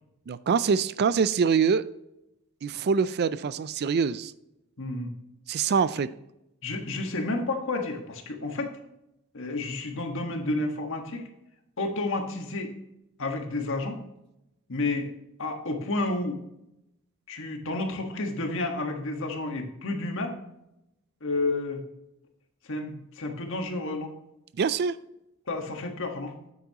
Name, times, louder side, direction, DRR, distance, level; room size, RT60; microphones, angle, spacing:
voice 1, 0.3-1.8 2.6-4.3 5.5-6.1 24.6-24.9, right 6 dB, 50° right, 16 dB, 0.4 m, -24 dB
voice 2, 4.8-5.1 6.6-8.7 9.3-11.2 11.8-12.7 13.2-14.0 14.7-15.1 15.4-16.4 17.3-20.4 21.2-21.8 22.7-24.1 25.5-26.3, left 2 dB, 60° left, 4 dB, 1.5 m, -30 dB
9.5 x 8.3 x 2.9 m, 0.85 s
head